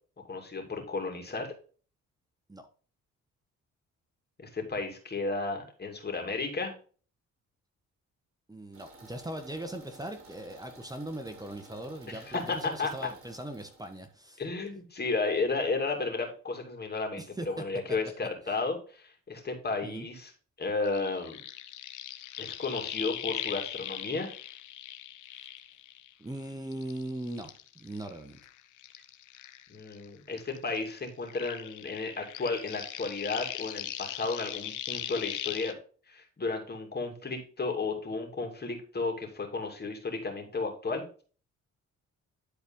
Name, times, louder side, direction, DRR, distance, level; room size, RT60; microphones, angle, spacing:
voice 1, 0.3-1.5 4.4-6.7 12.1-12.9 14.4-20.3 20.6-21.4 22.4-24.3 29.7-35.7 36.1-41.0, left 3 dB, 35° left, 3 dB, 2.8 m, -33 dB
voice 2, 8.5-14.4 17.2-17.5 19.8-20.1 26.2-28.4, right 1 dB, 10° right, 6 dB, 1.2 m, -40 dB
sound 1, 8.7-14.1, right 2 dB, 45° right, 4.6 m, -54 dB
sound 2, 20.8-26.4 26.7-30.1 30.3-35.7, left 12 dB, 80° left, 0.9 m, -40 dB
11.5 x 4.3 x 3.7 m, 0.39 s
cardioid pair, 90°, 30 cm